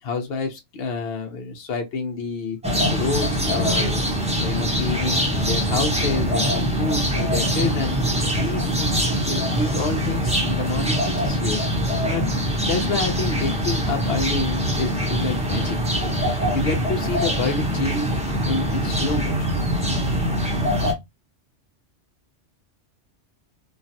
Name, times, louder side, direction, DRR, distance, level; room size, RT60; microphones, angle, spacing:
voice 1, 0.0-2.6 2.9-4.0 4.4-8.0 8.4-11.6 12.0-12.3 12.6-16.2 16.5-18.1 18.4-19.6, left 3 dB, 60° left, 0.8 m, -28 dB
sound 1, 2.6-20.9, equal, 5° right, 0.6 m, -23 dB
sound 2, 6.7-19.1, right 1 dB, 40° right, 0.8 m, -38 dB
3.1 x 2.3 x 2.7 m
omnidirectional pair, 1.2 m